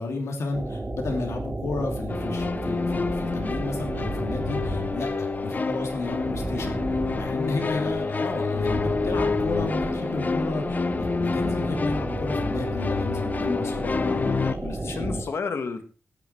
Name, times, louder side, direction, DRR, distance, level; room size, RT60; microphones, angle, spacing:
voice 1, 0.0-6.8 7.1-15.3, left 3 dB, 85° left, 2 dB, 2.8 m, -32 dB
sound 1, 0.5-15.2, right 2 dB, 25° right, 3.4 m, -33 dB
sound 2, 2.1-14.5, left 4 dB, 35° left, 0.7 m, -28 dB
voice 2, 14.6-15.8, left 5 dB, 65° left, 8 dB, 1.7 m, -32 dB
15.5 x 9.9 x 4.5 m, 0.35 s
wide cardioid pair, 135°, 5 cm